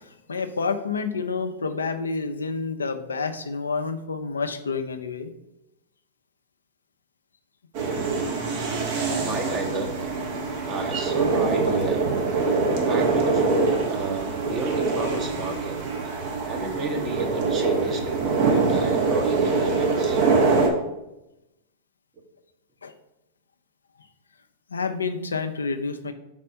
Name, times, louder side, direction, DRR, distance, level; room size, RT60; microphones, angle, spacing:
voice 1, 0.0-5.3 7.8-8.0 12.6-12.7 15.1-15.2 22.8-22.9 24.7-26.1, left 4 dB, 90° left, 7 dB, 0.5 m, -29 dB
sound 1, 7.7-20.7, right 4 dB, 55° right, 1.3 m, -24 dB
voice 2, 9.2-9.9 10.6-12.1 12.7-15.8 16.5-20.2, right 3 dB, 30° right, 3 dB, 1.2 m, -31 dB
4.4 x 4.2 x 5.6 m, 0.92 s
hypercardioid pair, 105°, 0 cm